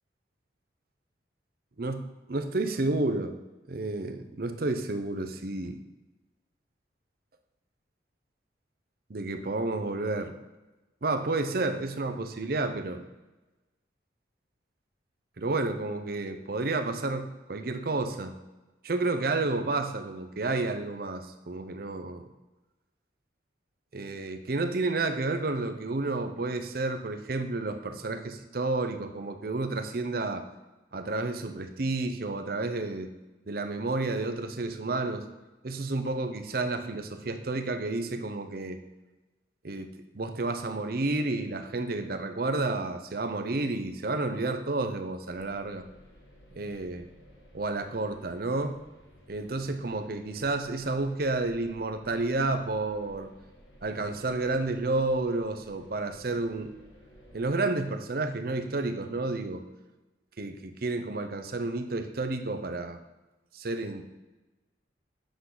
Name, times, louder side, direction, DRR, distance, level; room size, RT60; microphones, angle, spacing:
voice 1, 1.8-3.3 3.7-5.8 9.1-10.3 11.0-13.1 15.4-18.3 18.8-22.2 23.9-30.5 30.9-33.1 33.5-35.3 35.6-38.8 39.6-39.9 40.1-45.8 46.5-47.0 47.5-48.8 49.3-53.3 53.8-56.7 57.3-59.6 60.4-63.0 63.5-64.0, right 2 dB, 55° right, 7 dB, 0.7 m, -31 dB
sound 1, 45.3-57.5, equal, 75° left, 1.5 m, -55 dB
8.2 x 6.5 x 3.9 m, 1.1 s
head